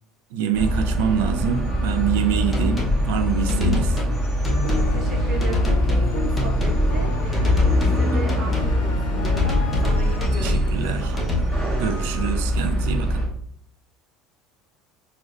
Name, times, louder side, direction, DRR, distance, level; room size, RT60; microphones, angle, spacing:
voice 1, 0.3-4.0 10.4-11.1 11.8-13.2, right 7 dB, 80° right, 7 dB, 0.4 m, -25 dB
sound 1, 0.5-13.2, equal, 10° right, 1.2 m, -24 dB
sound 2, 2.5-3.0 3.5-4.1 4.4-4.9 5.4-6.1 6.4-6.8 7.3-8.0 8.3-8.7 9.2-10.7 11.2-11.4, left 2 dB, 10° left, 0.8 m, -24 dB
sound 3, 4.5-10.2, left 3 dB, 90° left, 0.5 m, -31 dB
voice 2, 4.7-11.3, right 2 dB, 40° right, 1 dB, 0.9 m, -36 dB
6.1 x 2.1 x 2.5 m, 0.64 s
supercardioid pair, 135°, 0 cm